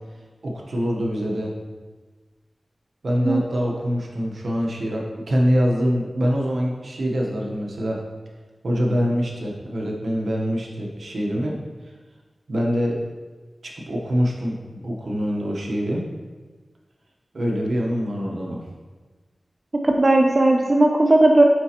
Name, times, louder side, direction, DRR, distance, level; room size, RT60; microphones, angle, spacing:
voice 1, 0.4-1.5 3.0-8.0 8.6-11.6 12.5-13.0 13.6-16.0 17.3-18.6, equal, 80° right, -1 dB, 1.0 m, -24 dB
voice 2, 19.8-21.4, right 2 dB, 45° right, 2 dB, 0.5 m, -16 dB
9.1 x 4.1 x 2.9 m, 1.3 s
wide cardioid pair, 60°, 0 cm